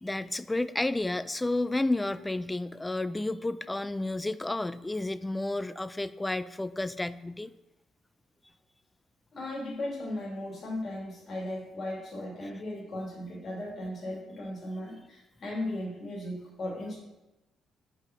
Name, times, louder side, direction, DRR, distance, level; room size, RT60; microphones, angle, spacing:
voice 1, 0.0-7.5, left 2 dB, 15° left, 15 dB, 0.3 m, -31 dB
voice 2, 9.3-16.9, left 1 dB, 45° left, -4 dB, 2.1 m, -36 dB
4.8 x 4.7 x 5.7 m, 1.0 s
cardioid pair, 90°, 0 cm